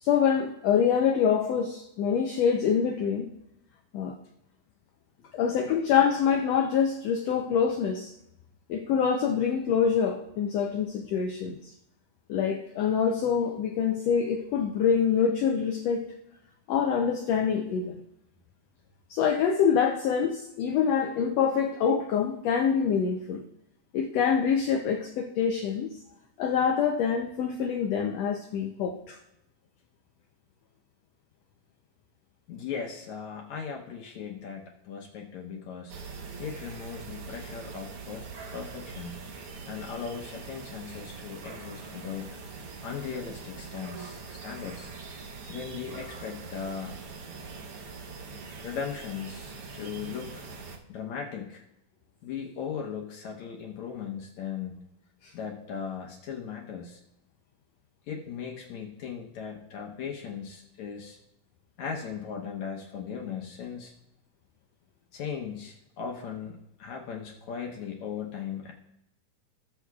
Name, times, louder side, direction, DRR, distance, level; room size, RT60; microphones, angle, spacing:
voice 1, 0.0-3.3 3.9-4.2 5.3-8.1 8.7-11.7 12.3-16.1 16.7-18.0 19.1-23.4 23.9-25.9 26.4-29.2 55.2-55.3, left 7 dB, 90° left, 4 dB, 1.4 m, -25 dB
voice 2, 32.5-35.9 36.4-39.2 39.7-42.4 42.8-44.9 45.5-46.9 48.6-50.4 50.9-51.6 52.2-54.8 55.3-57.0 58.1-61.2 61.8-63.9 65.1-68.7, left 7 dB, 70° left, 0 dB, 2.0 m, -38 dB
sound 1, 35.9-50.8, right 4 dB, 75° right, 1.3 m, -43 dB
19.5 x 7.0 x 2.3 m, 0.84 s
omnidirectional pair, 3.7 m